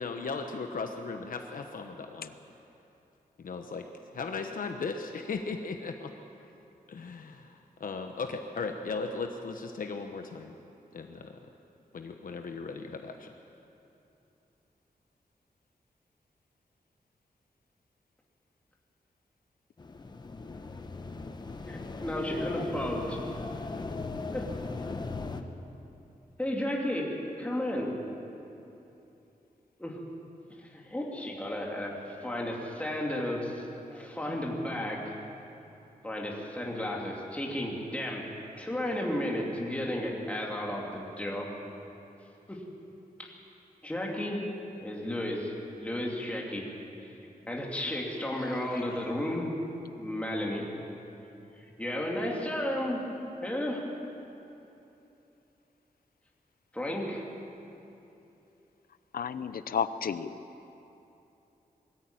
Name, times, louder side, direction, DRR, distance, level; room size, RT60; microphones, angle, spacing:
voice 1, 0.0-2.3 3.4-3.9 4.1-6.1 6.9-10.5 10.9-11.4 11.9-13.3, left 4 dB, 70° left, 4 dB, 1.1 m, -37 dB
sound 1, 19.8-25.4, left 3 dB, 30° left, 0.9 m, -38 dB
voice 2, 21.7-23.2 24.3-24.5 26.4-28.0 29.8-30.0 30.6-35.2 36.0-38.2 38.6-41.5 42.5-42.6 43.2-43.3 43.8-44.4 44.8-45.5 45.8-46.7 47.5-49.6 50.0-50.7 51.6-53.1 53.4-53.9 56.7-57.2, left 1 dB, 10° left, -2 dB, 2.7 m, -33 dB
voice 3, 48.4-48.9 59.1-60.4, left 7 dB, 85° left, 12 dB, 0.7 m, -33 dB
21.5 x 13.5 x 8.9 m, 2.9 s
wide cardioid pair, 180°, 15 cm